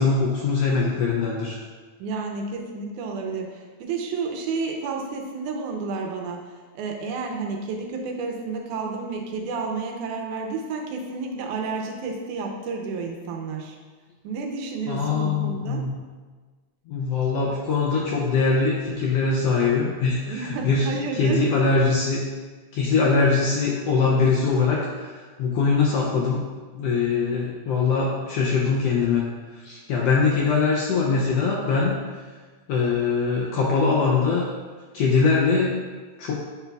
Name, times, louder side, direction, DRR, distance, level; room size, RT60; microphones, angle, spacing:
voice 1, 0.0-1.6 14.9-15.9 16.9-22.2 22.7-26.4 26.7-29.2 29.5-32.0 32.7-34.4 34.9-35.8 36.2-36.3, left 4 dB, 80° left, -3 dB, 1.5 m, -22 dB
voice 2, 2.0-6.4 6.8-13.8 14.2-15.8 20.3-21.4, right 4 dB, 90° right, 2 dB, 2.2 m, -31 dB
7.8 x 5.7 x 2.3 m, 1.4 s
omnidirectional pair, 3.4 m